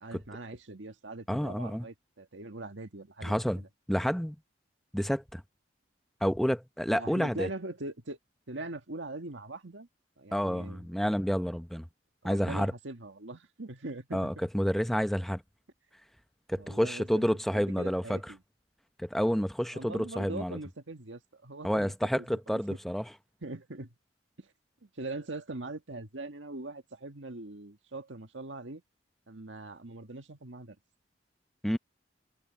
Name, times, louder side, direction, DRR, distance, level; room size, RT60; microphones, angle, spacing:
voice 1, 0.0-3.7 6.9-8.2 8.5-9.9 10.2-10.9 12.2-14.3 16.6-18.4 19.7-22.8 23.4-23.9 24.4-24.5 24.8-28.8 29.3-30.8, right 2 dB, 85° right, 1.8 m, -42 dB
voice 2, 1.3-1.9 3.2-3.6 3.9-4.4 4.9-5.4 6.2-7.5 10.3-11.8 12.2-12.7 14.1-15.4 16.5-18.2 19.0-20.6 21.6-23.0 31.6-31.8, equal, ahead, 0.7 m, -29 dB
head